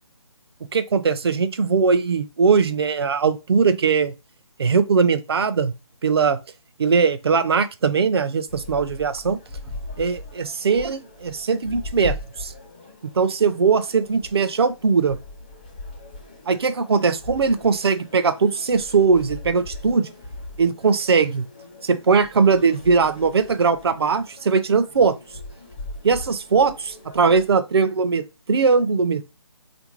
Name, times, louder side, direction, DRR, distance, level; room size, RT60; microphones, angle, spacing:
voice 1, 0.7-4.1 4.6-5.7 6.0-6.4 6.8-9.4 10.0-12.5 13.1-15.2 16.5-20.1 20.6-21.5 21.8-25.2 26.0-29.3, right 5 dB, 50° right, 0.4 m, -20 dB
sound 1, 8.5-27.6, left 2 dB, 15° left, 0.4 m, -40 dB
3.4 x 2.5 x 3.0 m
figure-of-eight pair, 160°, 17 cm